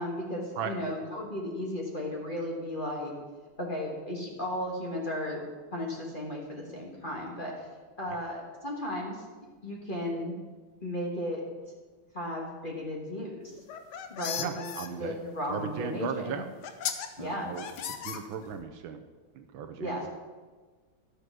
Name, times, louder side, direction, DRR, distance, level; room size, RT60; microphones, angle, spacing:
voice 1, 0.0-3.1 3.6-5.4 5.7-7.6 8.0-9.2 9.6-10.4 10.8-11.4 12.1-13.5 14.1-14.7 14.9-16.4 17.2-17.5 19.8-20.1, left 1 dB, 25° left, -2 dB, 1.5 m, -35 dB
sound 1, 13.6-14.9 16.0-16.1 16.6-17.1 17.6-18.6, left 8 dB, 65° left, 1.2 m, -36 dB
voice 2, 14.4-15.1 15.5-16.5 17.2-17.7 18.0-19.0 19.3-20.1, right 7 dB, 70° right, 6 dB, 1.4 m, -37 dB
12.5 x 6.7 x 6.1 m, 1.4 s
omnidirectional pair, 2.3 m